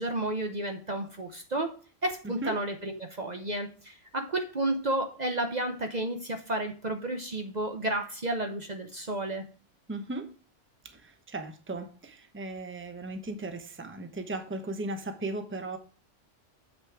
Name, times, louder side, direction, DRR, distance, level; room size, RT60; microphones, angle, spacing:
voice 1, 0.0-9.5, right 1 dB, 40° right, 1.0 m, -32 dB
voice 2, 9.9-10.3 10.8-15.8, right 2 dB, 10° right, 0.9 m, -37 dB
7.7 x 6.2 x 4.7 m
omnidirectional pair, 1.2 m